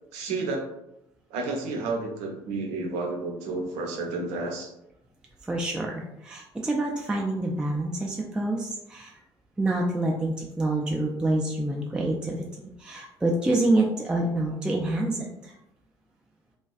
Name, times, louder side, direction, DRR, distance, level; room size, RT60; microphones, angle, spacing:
voice 1, 0.1-0.7 1.3-4.7, right 3 dB, 55° right, 2 dB, 0.5 m, -31 dB
voice 2, 5.4-9.2 9.6-12.4 12.8-15.5, right 2 dB, 5° right, -1 dB, 0.3 m, -27 dB
2.3 x 2.3 x 2.4 m, 0.84 s
figure-of-eight pair, 55°, 14 cm